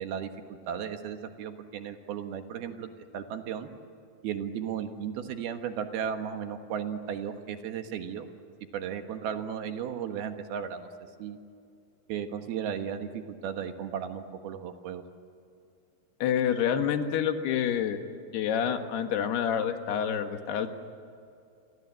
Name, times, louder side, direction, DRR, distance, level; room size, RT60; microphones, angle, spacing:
voice 1, 0.0-3.7 4.2-8.3 8.7-10.9 11.2-11.4 12.1-15.0, right 8 dB, 75° right, 6 dB, 3.4 m, -35 dB
voice 2, 16.2-18.0 18.3-20.7, left 8 dB, 90° left, 6 dB, 3.6 m, -28 dB
29.0 x 24.5 x 7.6 m, 2.5 s
omnidirectional pair, 4.5 m